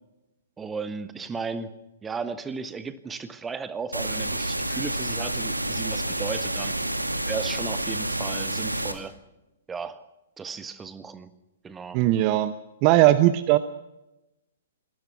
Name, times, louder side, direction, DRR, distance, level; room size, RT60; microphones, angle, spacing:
voice 1, 0.6-1.7 2.0-6.7 7.3-9.1 9.7-10.0 10.4-11.3 11.6-12.1, right 5 dB, 10° right, 12 dB, 1.4 m, -35 dB
sound 1, 3.9-8.9, right 1 dB, 85° right, 2.6 m, -29 dB
voice 2, 11.9-12.5 12.8-13.6, right 15 dB, 30° right, 13 dB, 0.9 m, -19 dB
27.0 x 19.5 x 6.1 m, 0.96 s
figure-of-eight pair, 115°, 0 cm